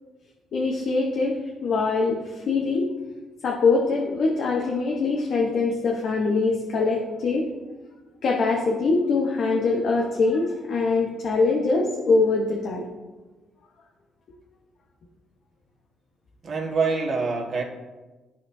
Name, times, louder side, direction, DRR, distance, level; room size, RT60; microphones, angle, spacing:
voice 1, 0.5-1.4 1.6-2.9 3.4-7.4 8.2-12.9, left 3 dB, 65° left, -2 dB, 1.0 m, -23 dB
voice 2, 16.4-17.6, right 4 dB, 50° right, -1 dB, 1.5 m, -25 dB
12.0 x 4.2 x 2.7 m, 1.2 s
cardioid pair, 90°, 0 cm